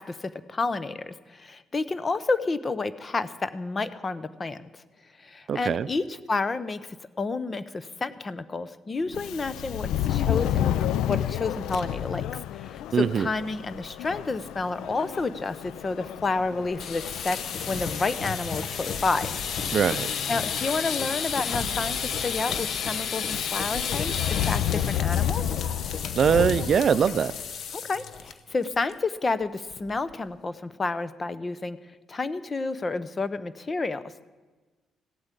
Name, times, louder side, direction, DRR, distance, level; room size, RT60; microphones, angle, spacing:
voice 1, 0.0-4.8 5.2-10.8 11.1-17.4 17.7-19.4 20.3-25.4 27.7-31.8 32.1-34.1, left 3 dB, 30° left, 15 dB, 0.8 m, -30 dB
voice 2, 5.5-5.9 12.9-13.3 19.7-20.1 26.2-27.3, right 7 dB, 55° right, 16 dB, 0.4 m, -22 dB
Subway metro underground, 9.1-27.4, left 11 dB, 85° left, 0.4 m, -32 dB
sound 1, 16.7-28.3 28.6-28.9 29.2-29.3 29.7-30.1, left 6 dB, 65° left, 1.0 m, -32 dB
16.0 x 8.8 x 8.3 m, 1.3 s
cardioid pair, 90°, 0 cm